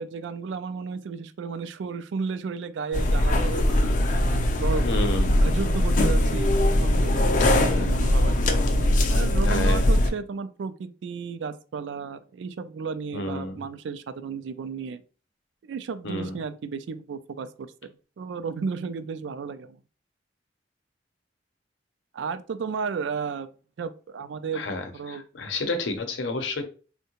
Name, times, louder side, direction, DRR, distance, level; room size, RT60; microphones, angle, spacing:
voice 1, 0.0-4.9 5.4-8.3 9.1-15.0 15.6-19.8 22.1-23.5 23.8-24.6 24.9-25.2, right 5 dB, 80° right, 11 dB, 0.3 m, -33 dB
sound 1, 2.9-10.1, left 1 dB, 45° left, 0.4 m, -21 dB
voice 2, 4.8-5.4 7.4-8.1 9.4-9.9 13.1-13.6 16.0-16.3 24.5-26.6, left 2 dB, 85° left, 6 dB, 0.6 m, -30 dB
3.6 x 2.1 x 2.8 m, 0.37 s
head